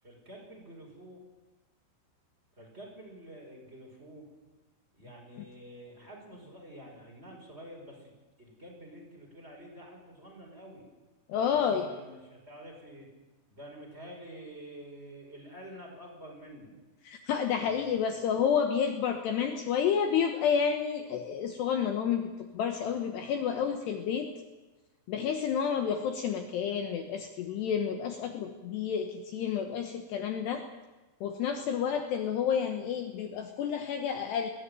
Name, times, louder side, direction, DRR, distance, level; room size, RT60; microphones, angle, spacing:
voice 1, 0.0-1.2 2.5-4.3 4.9-8.1 8.4-10.8 11.5-13.1 13.5-16.7 17.6-18.2, equal, 10° right, -1 dB, 5.3 m, -48 dB
voice 2, 11.3-11.9 17.1-24.3 25.1-30.6 31.2-34.5, left 7 dB, 70° left, 5 dB, 2.9 m, -30 dB
21.0 x 17.0 x 9.1 m, 1.2 s
omnidirectional pair, 5.7 m